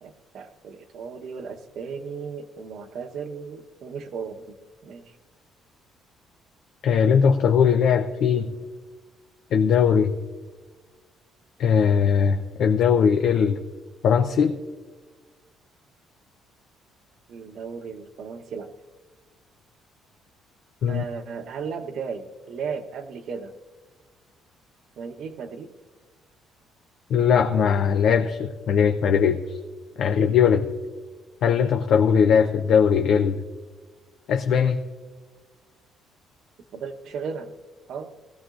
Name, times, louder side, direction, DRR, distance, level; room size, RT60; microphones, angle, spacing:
voice 1, 0.0-4.6 4.8-5.0 17.3-18.7 20.9-23.5 25.0-25.7 36.7-37.5 37.9-38.1, right 5 dB, 60° right, 5 dB, 1.0 m, -35 dB
voice 2, 6.8-8.5 9.5-10.1 11.6-13.6 14.0-14.6 20.8-21.0 27.1-29.6 30.0-30.7 31.4-33.4 34.3-34.8, left 7 dB, 65° left, 4 dB, 0.6 m, -20 dB
20.0 x 15.0 x 2.5 m, 1.4 s
cardioid pair, 130°, 0 cm